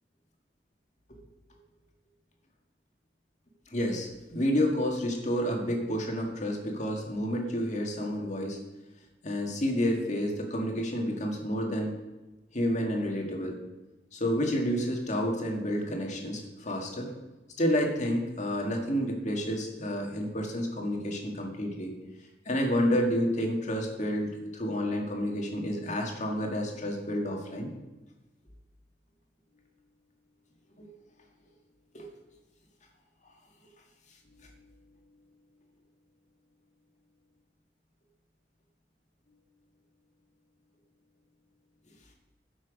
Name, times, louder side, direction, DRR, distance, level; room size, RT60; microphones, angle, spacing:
voice 1, 3.7-8.6 9.2-12.0 12.5-13.6 14.1-17.1 17.6-21.9 22.5-27.7 30.8-30.9 31.9-32.1 34.4-34.5, equal, 40° left, 1 dB, 1.9 m, -30 dB
13.0 x 6.1 x 5.2 m, 1.1 s
head